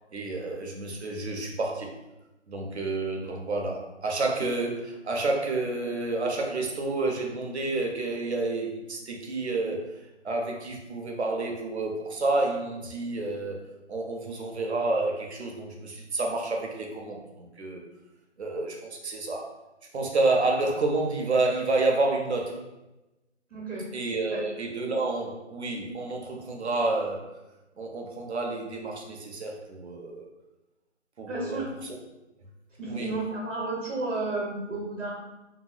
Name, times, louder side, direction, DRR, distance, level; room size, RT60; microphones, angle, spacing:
voice 1, 0.1-1.9 2.5-9.9 10.2-13.6 13.9-17.8 18.4-19.5 19.9-22.6 23.9-27.3 27.8-30.3 31.2-31.6 32.8-33.1, right 2 dB, 60° right, 1 dB, 0.7 m, -29 dB
voice 2, 23.5-23.9 24.3-24.4 31.3-31.6 32.8-35.1, right 3 dB, 80° right, -4 dB, 1.1 m, -32 dB
3.0 x 2.7 x 2.2 m, 1.0 s
figure-of-eight pair, 165°, 37 cm